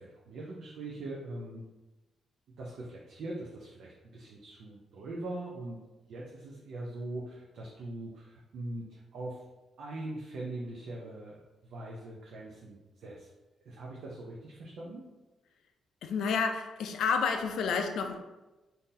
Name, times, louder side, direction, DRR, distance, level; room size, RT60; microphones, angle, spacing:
voice 1, 0.0-1.7 2.6-9.4 9.8-13.3 13.6-15.0, right 2 dB, 70° right, -3 dB, 0.5 m, -42 dB
voice 2, 16.0-18.2, left 5 dB, 80° left, 5 dB, 0.3 m, -30 dB
3.7 x 2.7 x 2.7 m, 1.1 s
cardioid pair, 130°, 0 cm